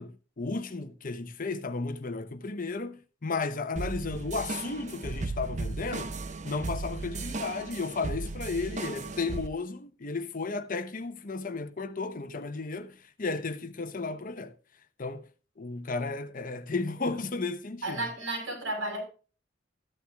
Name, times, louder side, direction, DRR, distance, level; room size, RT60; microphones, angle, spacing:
voice 1, 0.0-6.1 6.4-14.5 15.0-15.2 15.6-18.0, left 3 dB, 45° left, 0.9 m, -34 dB
sound 1, 3.8-9.5, right 3 dB, 40° right, 0.9 m, -36 dB
voice 2, 17.8-19.0, right 1 dB, 80° right, 5.5 m, -33 dB
14.0 x 10.0 x 2.3 m
head